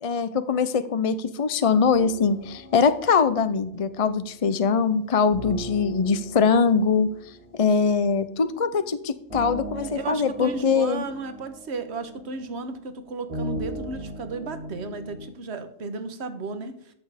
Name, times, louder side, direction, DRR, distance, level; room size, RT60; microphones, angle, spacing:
voice 1, 0.0-7.1 7.5-11.0, left 5 dB, 40° left, 12 dB, 0.5 m, -22 dB
sound 1, 1.9-15.3, right 1 dB, 25° right, 2.6 m, -40 dB
voice 2, 9.7-16.7, right 4 dB, 60° right, 9 dB, 1.4 m, -34 dB
14.0 x 6.8 x 5.0 m, 0.66 s
omnidirectional pair, 1.3 m